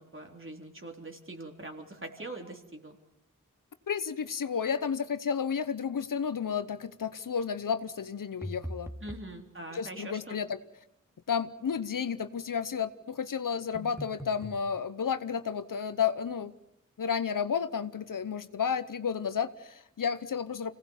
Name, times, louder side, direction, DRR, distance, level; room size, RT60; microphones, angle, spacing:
voice 1, 0.0-3.0 9.0-10.4, right 2 dB, 40° right, 3 dB, 3.7 m, -43 dB
voice 2, 3.9-8.9 9.7-10.6 11.3-16.5 17.0-20.7, left 7 dB, 80° left, 13 dB, 0.9 m, -32 dB
sound 1, 8.4-9.3 13.7-14.6, equal, 10° right, 2.4 m, -40 dB
26.0 x 18.0 x 7.2 m, 0.82 s
cardioid pair, 40°, 32 cm